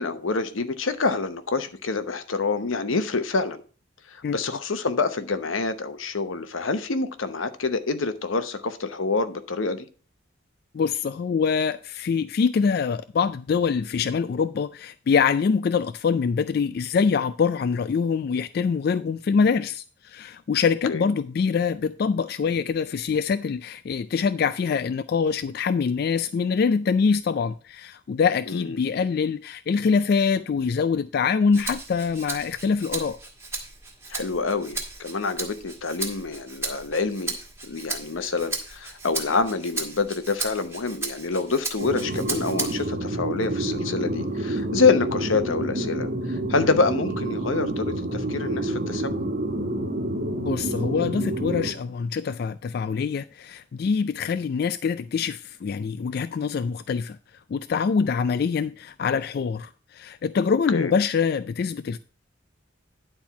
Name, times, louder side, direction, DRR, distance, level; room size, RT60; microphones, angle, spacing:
voice 1, 0.0-3.6 4.1-9.9 20.9-21.1 28.5-28.8 34.1-37.4 37.6-49.2 60.7-60.9, left 4 dB, 85° left, 0.9 m, -26 dB
voice 2, 10.7-33.2 50.5-57.2 57.5-62.0, left 5 dB, 50° left, 0.3 m, -24 dB
Rattle (instrument), 31.5-43.0 43.4-44.6, right 3 dB, 15° right, 1.5 m, -35 dB
sound 1, 41.8-51.7, right 1 dB, 50° right, 1.3 m, -28 dB
10.0 x 4.4 x 5.7 m
head